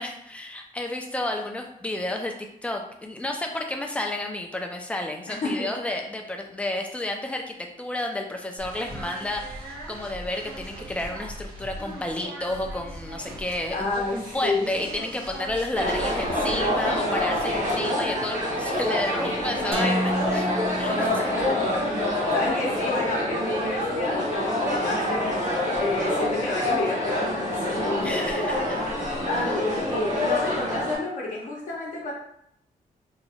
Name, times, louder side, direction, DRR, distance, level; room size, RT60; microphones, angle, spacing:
voice 1, 0.0-2.3 2.6-20.5 20.8-21.0 22.5-22.6 28.0-28.8 29.4-29.6, left 1 dB, 10° left, 2 dB, 0.4 m, -31 dB
voice 2, 5.3-6.0 13.7-14.7 19.8-19.9 21.0-28.6 29.2-32.1, left 2 dB, 60° left, -4 dB, 0.7 m, -30 dB
sound 1, 8.6-20.8, right 1 dB, 80° right, 0.9 m, -40 dB
sound 2, 15.7-30.9, left 1 dB, 55° right, 1.0 m, -26 dB
sound 3, 19.7-21.8, equal, 40° right, 0.7 m, -29 dB
2.8 x 2.2 x 4.1 m, 0.73 s
wide cardioid pair, 165°, 15 cm